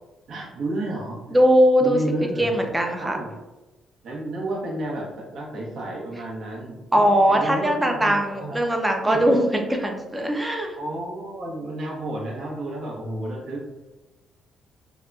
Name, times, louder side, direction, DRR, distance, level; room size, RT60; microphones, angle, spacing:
voice 1, 0.3-1.2 1.8-2.6 3.0-3.3 4.0-8.6 9.1-9.4 10.7-13.6, right 1 dB, 65° right, -2 dB, 0.8 m, -31 dB
voice 2, 1.3-2.0 2.4-3.2 6.9-10.8, equal, 10° right, 2 dB, 0.4 m, -20 dB
2.8 x 2.2 x 2.4 m, 1.1 s
cardioid pair, 90°, 0 cm